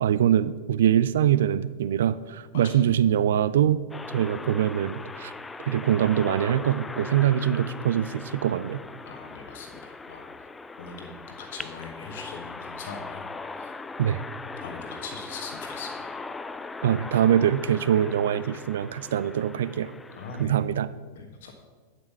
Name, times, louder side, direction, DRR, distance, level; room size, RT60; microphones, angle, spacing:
voice 1, 0.0-3.8 4.1-5.3 5.7-8.8 14.0-14.2 16.8-19.9 20.4-20.9, right 10 dB, 60° right, 15 dB, 0.4 m, -23 dB
sound 1, 3.9-20.5, left 3 dB, 10° left, 0.4 m, -39 dB
voice 2, 9.0-10.3 10.8-13.2 13.5-13.7 14.6-16.2 20.2-20.6 21.1-21.5, left 4 dB, 55° left, 3 dB, 1.5 m, -41 dB
9.6 x 7.6 x 5.5 m, 1.3 s
figure-of-eight pair, 90°, 0 cm